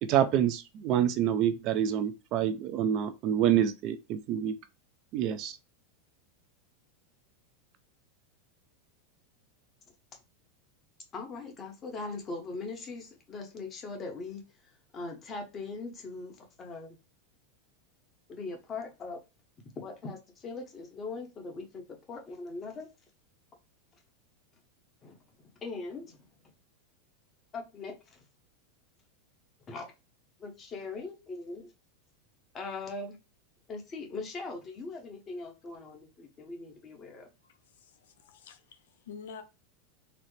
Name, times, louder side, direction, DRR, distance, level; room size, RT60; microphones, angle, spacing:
voice 1, 0.0-4.6 5.1-5.6, right 10 dB, 45° right, 0.4 m, -27 dB
voice 2, 11.1-14.4 14.9-17.0 18.3-19.2 19.8-22.9 25.0-25.2 25.6-26.3 27.5-28.2 29.7-29.9 30.4-31.7 32.5-33.2 33.7-37.3, left 3 dB, 25° left, 0.9 m, -40 dB
voice 3, 37.4-39.4, left 6 dB, 85° left, 0.6 m, -49 dB
4.0 x 2.0 x 3.1 m
supercardioid pair, 145°, 0 cm